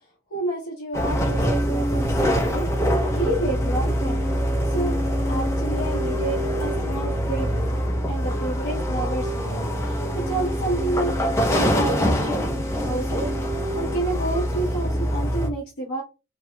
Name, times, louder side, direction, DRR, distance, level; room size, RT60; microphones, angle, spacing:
voice 1, 0.3-4.9 5.2-13.3 13.7-16.0, right 2 dB, 75° left, -3 dB, 0.9 m, -30 dB
sound 1, 0.9-15.5, equal, 15° left, 0.6 m, -24 dB
3.3 x 2.8 x 2.2 m, 0.29 s
head